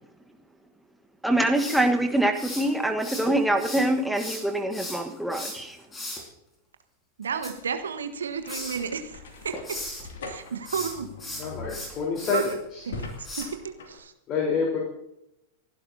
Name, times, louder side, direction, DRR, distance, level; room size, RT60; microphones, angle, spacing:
voice 1, 1.2-5.8, right 1 dB, ahead, 4 dB, 1.3 m, -24 dB
sound 1, 1.5-3.3 3.6-6.2 7.2-8.2 8.5-8.8 9.2-10.0 10.6-12.5 13.2-13.4, left 1 dB, 15° left, 4.9 m, -37 dB
voice 2, 7.2-9.8 10.2-11.3 12.2-12.4 12.8-14.1, right 6 dB, 70° right, 8 dB, 1.4 m, -33 dB
sound 2, 7.3-14.0, left 3 dB, 60° left, 2.5 m, -43 dB
voice 3, 11.4-12.5 14.3-14.8, left 5 dB, 35° left, -2 dB, 4.0 m, -27 dB
30.0 x 11.5 x 2.8 m, 0.86 s
figure-of-eight pair, 90°, 0 cm